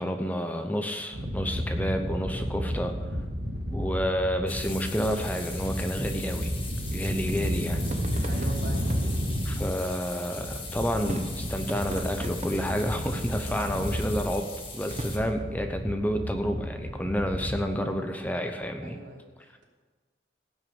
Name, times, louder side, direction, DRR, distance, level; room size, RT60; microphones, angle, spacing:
voice 1, 0.0-2.9 3.7-6.5 6.9-7.8 9.4-14.5 14.7-19.0, equal, 10° left, 5 dB, 0.8 m, -29 dB
sound 1, 1.1-17.6, equal, 65° right, 1.8 m, -32 dB
sound 2, 4.5-15.2, left 4 dB, 30° left, 2.1 m, -41 dB
sound 3, 7.5-17.8, right 1 dB, 35° right, 0.9 m, -44 dB
voice 2, 8.2-8.8 18.8-19.6, right 2 dB, 85° right, -2 dB, 3.3 m, -43 dB
17.0 x 6.3 x 7.1 m, 1.3 s
head